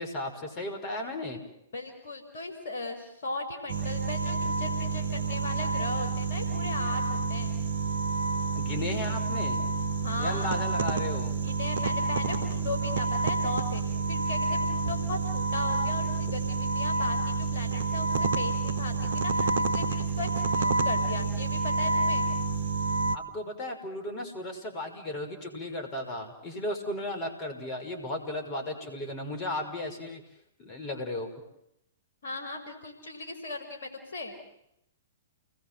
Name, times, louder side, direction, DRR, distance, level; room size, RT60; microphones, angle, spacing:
voice 1, 0.0-1.4 8.5-9.6 10.2-11.4 23.1-30.2 30.6-31.3, left 1 dB, 30° left, 4 dB, 5.9 m, -35 dB
voice 2, 1.7-7.5 10.0-10.5 11.4-22.3 32.2-34.4, left 2 dB, 60° left, 4 dB, 4.9 m, -37 dB
sound 1, 3.7-23.2, right 3 dB, 65° right, 1.5 m, -28 dB
30.0 x 20.5 x 7.8 m, 0.82 s
figure-of-eight pair, 110°, 0 cm